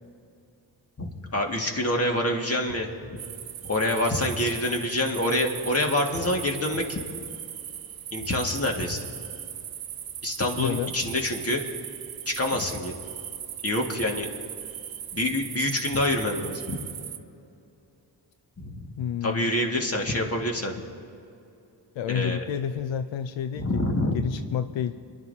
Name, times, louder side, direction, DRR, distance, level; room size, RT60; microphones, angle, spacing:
voice 1, 1.0-3.2 3.6-7.0 8.1-9.0 10.2-11.6 12.3-12.9 13.6-14.3 15.1-16.8 18.6-18.9 19.2-20.7 22.1-22.4 23.6-24.1, left 1 dB, 35° left, 1 dB, 2.0 m, -26 dB
sound 1, 3.2-17.2, right 9 dB, 55° right, 0.6 m, -38 dB
voice 2, 10.6-10.9 19.0-19.5 22.0-23.8 24.1-25.0, left 9 dB, 90° left, 10 dB, 0.5 m, -29 dB
27.5 x 11.0 x 2.8 m, 2.6 s
cardioid pair, 65°, 44 cm